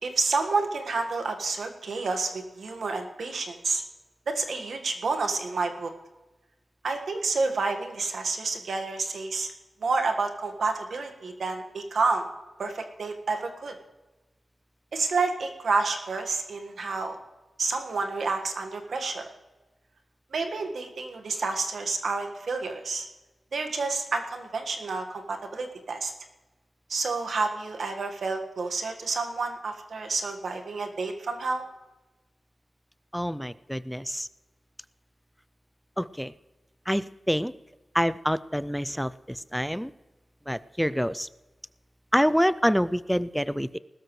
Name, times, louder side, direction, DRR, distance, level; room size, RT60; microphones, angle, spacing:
voice 1, 0.0-3.8 4.3-5.9 6.8-9.5 9.8-12.3 12.6-13.7 14.9-17.2 17.6-19.3 20.3-23.1 23.5-26.1 26.9-31.6, right 4 dB, 70° right, 4 dB, 1.5 m, -29 dB
voice 2, 33.1-34.3 36.0-36.3 36.9-37.5 37.9-39.9 40.5-41.3 42.1-43.8, equal, ahead, 16 dB, 0.3 m, -26 dB
20.0 x 13.0 x 3.2 m, 1.1 s
wide cardioid pair, 145°, 0 cm